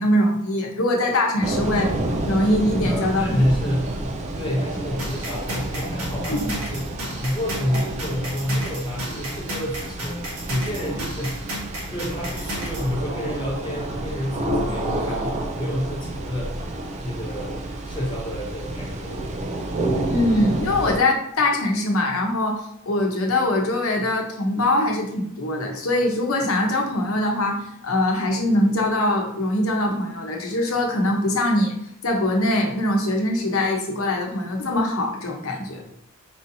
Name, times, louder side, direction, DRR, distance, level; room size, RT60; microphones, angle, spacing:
voice 1, 0.0-1.9 2.3-3.4 6.3-6.5 20.1-22.6 22.9-31.7 32.0-35.8, left 1 dB, 75° left, 1 dB, 0.8 m, -22 dB
sound 1, 1.4-21.0, right 1 dB, 30° right, 0.4 m, -29 dB
voice 2, 2.8-3.9 4.3-16.7 17.0-17.6 17.8-19.4 35.7-35.9, equal, 20° left, -4 dB, 0.7 m, -29 dB
sound 2, 5.0-12.9, equal, 85° right, 1.3 m, -33 dB
4.7 x 2.7 x 2.7 m, 0.73 s
head